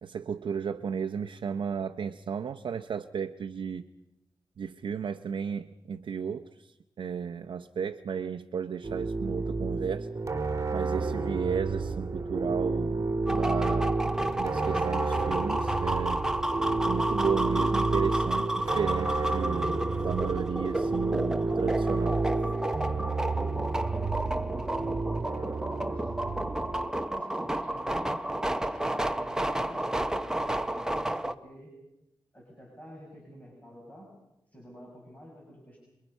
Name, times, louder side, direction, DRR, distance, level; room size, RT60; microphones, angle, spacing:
voice 1, 0.0-3.9 4.6-10.1 10.7-14.0 14.4-16.3 16.8-22.2, right 7 dB, 80° right, 6 dB, 0.7 m, -34 dB
sound 1, 8.8-26.9, right 3 dB, 40° right, 1.9 m, -30 dB
sound 2, 13.3-31.3, right 1 dB, 5° right, 0.9 m, -31 dB
voice 2, 23.8-24.9 25.7-26.5 27.1-31.7 32.3-34.1 34.5-35.8, equal, 20° left, -1 dB, 6.3 m, -48 dB
28.0 x 22.5 x 5.5 m, 0.92 s
wide cardioid pair, 115°, 8 cm